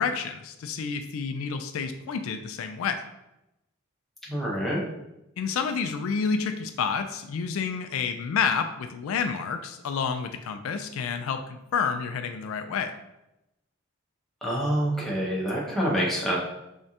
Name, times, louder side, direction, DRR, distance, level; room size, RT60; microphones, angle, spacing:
voice 1, 0.0-3.0 5.4-12.9, left 6 dB, 70° left, 8 dB, 0.3 m, -29 dB
voice 2, 4.3-4.8 14.4-16.4, equal, ahead, -5 dB, 0.8 m, -26 dB
3.6 x 3.3 x 2.7 m, 0.90 s
head